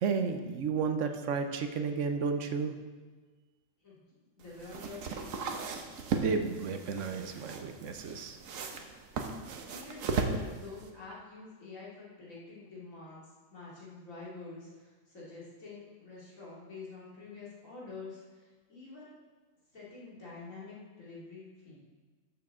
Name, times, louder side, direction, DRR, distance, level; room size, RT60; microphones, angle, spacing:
voice 1, 0.0-2.7 6.1-8.4, right 5 dB, 70° right, 7 dB, 1.1 m, -32 dB
voice 2, 4.4-5.5 9.7-13.2 13.5-18.4 18.7-19.2 19.7-21.8, left 3 dB, 90° left, -7 dB, 3.2 m, -47 dB
sound 1, 4.4-10.9, right 4 dB, 85° right, 1.3 m, -37 dB
12.5 x 6.7 x 3.8 m, 1.4 s
omnidirectional pair, 1.4 m